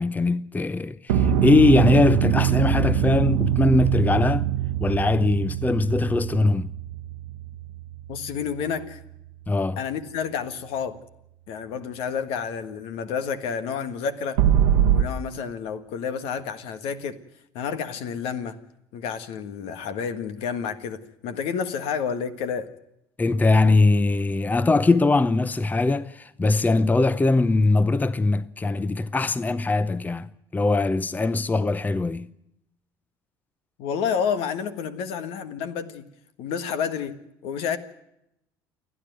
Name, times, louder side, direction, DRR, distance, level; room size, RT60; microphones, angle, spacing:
voice 1, 0.0-4.5 4.8-6.7 9.5-9.8 23.2-32.3, left 3 dB, 15° left, 0.7 m, -21 dB
sound 1, 1.1-9.5 14.4-15.0, right 10 dB, 90° right, 1.2 m, -23 dB
voice 2, 8.1-9.0 9.8-11.0 11.5-14.4 14.9-17.2 17.5-18.6 18.9-22.7 33.8-36.0 36.4-37.8, left 7 dB, 70° left, 1.6 m, -30 dB
28.5 x 10.0 x 9.1 m
hypercardioid pair, 75°, 10 cm